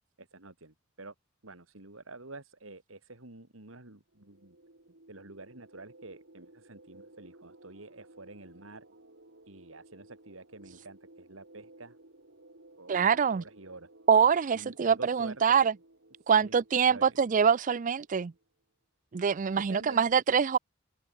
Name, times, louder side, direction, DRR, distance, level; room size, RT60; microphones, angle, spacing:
voice 1, 0.2-1.1 1.4-4.6 5.1-8.8 9.5-12.0 12.8-13.9 14.5-15.6 16.2-16.6 16.9-17.2 19.6-20.0, right 2 dB, 80° right, 3.2 m, -48 dB
sound 1, 4.1-18.4, right 2 dB, 65° right, 3.2 m, -57 dB
voice 2, 12.9-13.4 14.1-15.7 16.3-18.3 19.1-20.6, right 6 dB, 40° right, 0.4 m, -24 dB
head